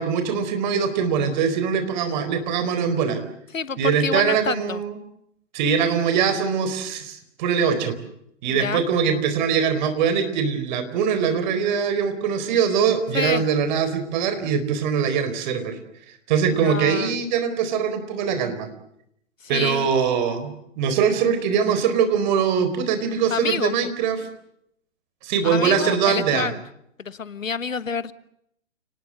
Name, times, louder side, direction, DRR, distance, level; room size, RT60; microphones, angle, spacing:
voice 1, 0.0-3.2 3.8-5.0 5.5-7.9 8.4-15.8 16.3-18.7 19.5-24.3 25.2-26.5, right 7 dB, 35° right, 9 dB, 4.3 m, -22 dB
voice 2, 3.5-4.8 8.5-8.8 13.1-13.4 16.5-17.2 19.4-19.9 23.3-23.7 25.4-26.6 27.0-28.1, left 5 dB, 85° left, 15 dB, 1.5 m, -28 dB
30.0 x 19.5 x 7.5 m, 0.73 s
hypercardioid pair, 140°, 38 cm